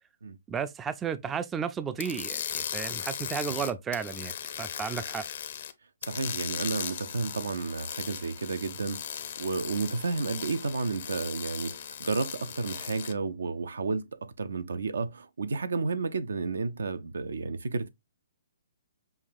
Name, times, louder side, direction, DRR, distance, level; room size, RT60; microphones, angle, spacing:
voice 1, 0.5-4.3 4.6-5.3, right 7 dB, 15° right, 0.3 m, -33 dB
sound 1, 2.0-5.7 6.0-13.1, left 9 dB, 55° left, 0.6 m, -37 dB
voice 2, 6.0-17.9, right 4 dB, 75° right, 0.5 m, -32 dB
5.6 x 2.3 x 2.5 m
hypercardioid pair, 135°, 0 cm